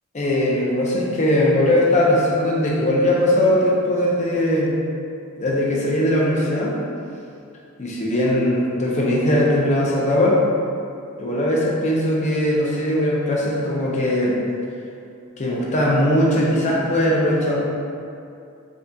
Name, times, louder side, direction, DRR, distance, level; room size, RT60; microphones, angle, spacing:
voice 1, 0.1-4.7 5.4-6.7 7.8-10.4 11.2-14.4 15.4-17.6, left 1 dB, 35° left, -4 dB, 0.5 m, -19 dB
3.6 x 2.6 x 2.2 m, 2.5 s
head